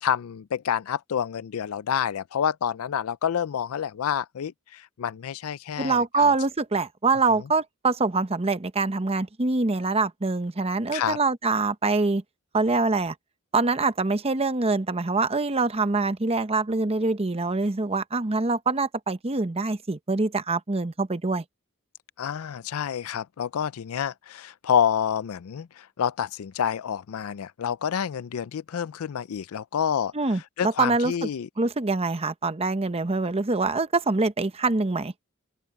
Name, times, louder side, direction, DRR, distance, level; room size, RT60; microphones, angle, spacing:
voice 1, 0.0-6.3 10.9-11.2 22.2-31.5, left 8 dB, 80° left, 0.4 m, -28 dB
voice 2, 5.8-12.2 12.5-13.1 13.5-21.4 30.1-31.3 31.6-35.1, right 3 dB, 30° right, 0.9 m, -24 dB
open air
head